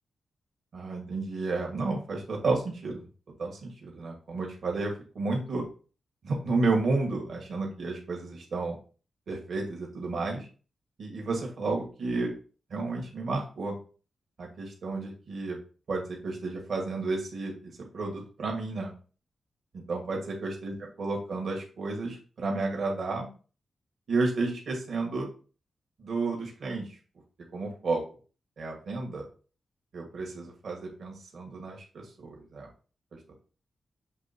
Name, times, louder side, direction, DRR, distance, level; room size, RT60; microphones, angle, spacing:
voice 1, 0.7-3.0 3.4-5.7 6.2-8.8 9.3-10.5 11.0-12.3 12.7-13.8 14.4-15.6 15.9-18.9 19.7-23.3 24.1-25.3 26.0-27.0 27.5-28.0 28.6-29.2 29.9-32.7 33.1-33.4, right 3 dB, 55° right, -1 dB, 1.6 m, -32 dB
7.3 x 3.4 x 4.2 m, 0.37 s
wide cardioid pair, 170°, 0 cm